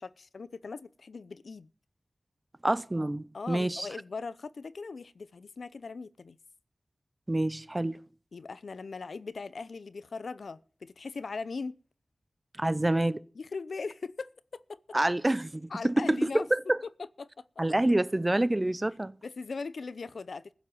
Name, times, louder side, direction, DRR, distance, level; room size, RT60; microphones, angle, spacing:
voice 1, 0.0-1.7 3.3-6.4 8.3-11.8 13.3-14.8 15.7-16.5 17.0-17.4 19.2-20.5, left 4 dB, 90° left, 0.7 m, -39 dB
voice 2, 2.6-3.9 7.3-8.0 12.6-13.2 14.9-16.8 17.6-19.1, right 1 dB, 25° right, 0.7 m, -27 dB
15.5 x 7.3 x 9.8 m
wide cardioid pair, 75°, 0 cm